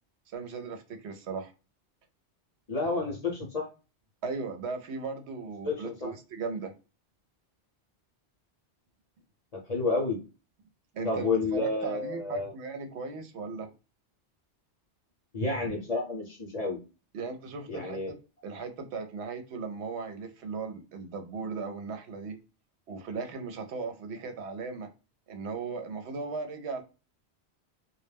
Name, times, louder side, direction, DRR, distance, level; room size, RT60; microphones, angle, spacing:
voice 1, 0.3-1.5 4.2-6.7 10.9-13.7 17.1-18.0 18.4-22.4 22.9-24.9 25.3-26.8, right 4 dB, 75° right, 0.8 m, -37 dB
voice 2, 2.7-3.7 5.6-6.1 9.5-10.2 11.0-12.5 15.3-16.8 17.7-18.1, left 3 dB, 40° left, 0.8 m, -30 dB
2.2 x 2.1 x 3.2 m
omnidirectional pair, 1.2 m